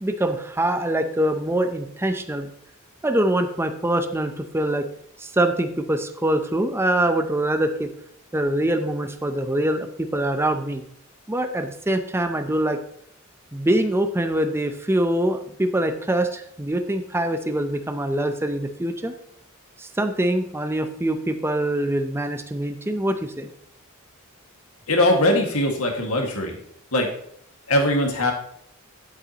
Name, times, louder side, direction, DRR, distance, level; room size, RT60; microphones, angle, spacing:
voice 1, 0.0-2.5 3.0-4.9 5.2-7.9 8.3-10.8 11.3-12.8 13.5-19.1 19.8-23.5, right 1 dB, 10° right, 8 dB, 0.6 m, -24 dB
voice 2, 24.9-26.6 26.9-27.1 27.7-28.3, left 1 dB, 85° left, 2 dB, 1.9 m, -21 dB
10.5 x 8.2 x 2.9 m, 0.69 s
head